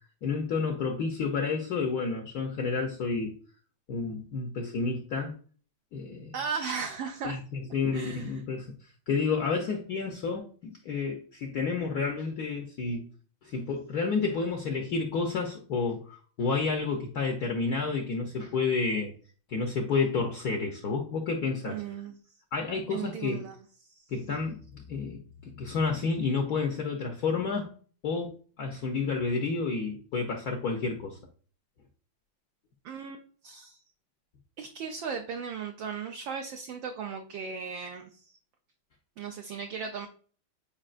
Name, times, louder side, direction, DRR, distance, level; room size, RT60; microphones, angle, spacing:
voice 1, 0.2-3.3 3.9-5.3 5.9-6.3 7.2-8.7 9.1-13.1 13.4-19.1 19.5-22.0 22.5-23.5 24.1-27.7 28.0-31.2, left 4 dB, 60° left, 1.0 m, -30 dB
voice 2, 6.3-7.4 7.9-8.3 21.6-22.2 22.9-23.6 23.9-24.0 32.8-33.8 34.6-38.3 39.2-40.1, right 6 dB, 70° right, 1.3 m, -36 dB
8.7 x 4.6 x 2.5 m
omnidirectional pair, 2.3 m